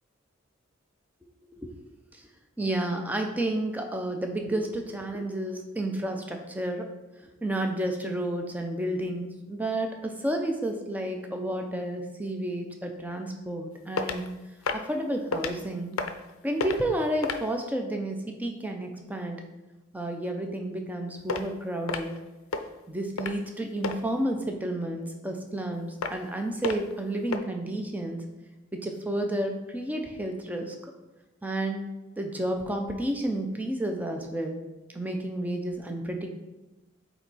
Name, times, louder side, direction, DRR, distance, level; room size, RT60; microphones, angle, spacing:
voice 1, 1.6-1.9 2.6-6.9 7.4-14.2 14.7-16.0 16.4-19.4 19.9-22.2 22.9-28.2 28.7-30.8 31.4-31.9 32.2-34.6 34.9-36.4, right 1 dB, 10° right, 3 dB, 0.6 m, -31 dB
sound 1, 14.0-14.3 14.6-14.9 15.3-15.5 15.9-16.3 16.6-16.8 17.2-17.5 21.3-21.4 21.9-22.2 22.5-22.7 23.2-23.5 23.8-24.0 26.0-26.3 26.6-26.9 27.3-27.4, left 4 dB, 80° left, 0.5 m, -30 dB
8.0 x 3.0 x 4.1 m, 1.0 s
head